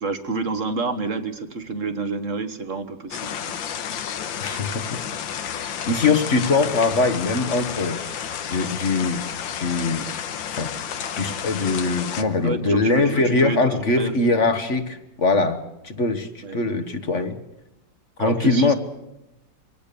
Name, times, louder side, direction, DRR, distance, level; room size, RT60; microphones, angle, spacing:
voice 1, 0.0-3.5 12.4-13.6 14.0-14.1 16.4-16.7 18.2-18.7, right 3 dB, 45° right, 10 dB, 1.6 m, -28 dB
sound 1, 3.1-12.2, left 8 dB, 80° left, 1.8 m, -31 dB
voice 2, 4.4-5.0 5.5-9.2 9.5-10.1 10.5-10.7 11.1-15.6 15.8-17.4 18.2-18.7, left 3 dB, 40° left, 9 dB, 1.5 m, -22 dB
24.5 x 18.0 x 6.9 m, 0.89 s
omnidirectional pair, 2.1 m